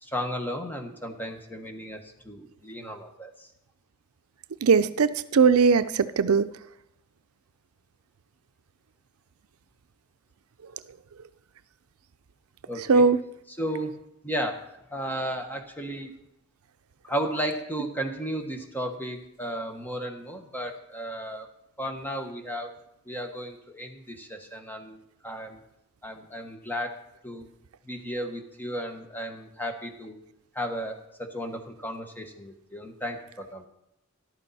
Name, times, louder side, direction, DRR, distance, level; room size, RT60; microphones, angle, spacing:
voice 1, 0.0-3.5 12.7-13.1 13.5-13.9 14.2-16.1 17.0-21.5 21.8-22.8 23.1-25.6 26.0-27.5 27.8-30.2 30.5-33.7, equal, 10° left, 4 dB, 1.2 m, -34 dB
voice 2, 4.6-6.5 12.9-13.2, right 5 dB, 85° right, 13 dB, 0.5 m, -19 dB
13.5 x 12.0 x 4.2 m, 0.79 s
head